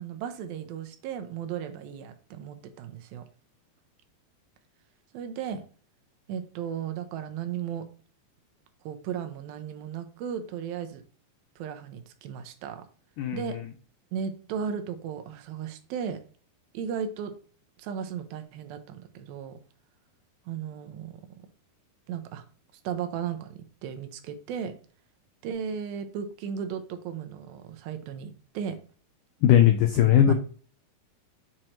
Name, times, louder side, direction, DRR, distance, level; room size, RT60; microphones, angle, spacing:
voice 1, 0.0-3.2 5.1-5.6 6.3-7.9 8.9-11.0 11.6-12.8 13.3-13.6 14.1-16.2 16.7-17.3 17.8-19.6 20.5-21.2 22.1-22.4 22.8-24.8 25.4-28.8 30.3-30.4, right 8 dB, 85° right, 7 dB, 2.5 m, -35 dB
voice 2, 29.4-30.3, left 10 dB, 85° left, 6 dB, 1.8 m, -18 dB
7.6 x 3.0 x 4.4 m, 0.42 s
omnidirectional pair, 4.3 m